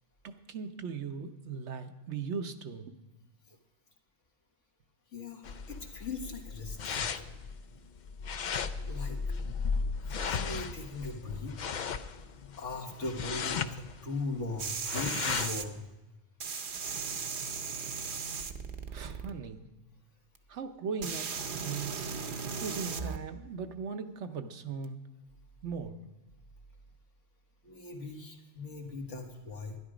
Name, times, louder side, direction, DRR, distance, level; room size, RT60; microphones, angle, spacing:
voice 1, 0.2-2.9 18.9-19.6 20.5-22.1 22.6-25.0 25.6-26.0, right 5 dB, 70° right, 7 dB, 1.1 m, -39 dB
voice 2, 5.1-7.2 8.9-9.4 10.0-11.6 12.6-15.9 27.6-29.8, left 3 dB, 75° left, 1 dB, 2.1 m, -39 dB
sound 1, 5.4-15.7, left 5 dB, 60° left, 0.5 m, -36 dB
sound 2, 14.6-15.6 16.4-19.3 20.3-20.4 21.0-23.2 24.8-24.9, right 5 dB, 50° right, 0.8 m, -37 dB
12.0 x 11.5 x 5.0 m, 1.1 s
omnidirectional pair, 1.3 m